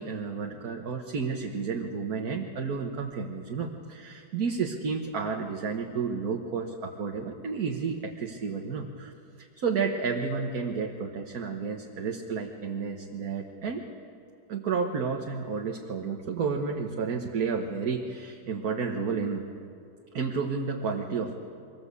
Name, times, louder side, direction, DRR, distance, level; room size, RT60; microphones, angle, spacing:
voice 1, 0.0-9.1 9.4-13.8 14.5-19.5 20.1-21.3, right 5 dB, 60° right, 2 dB, 1.7 m, -31 dB
23.5 x 19.5 x 8.3 m, 2.5 s
omnidirectional pair, 1.8 m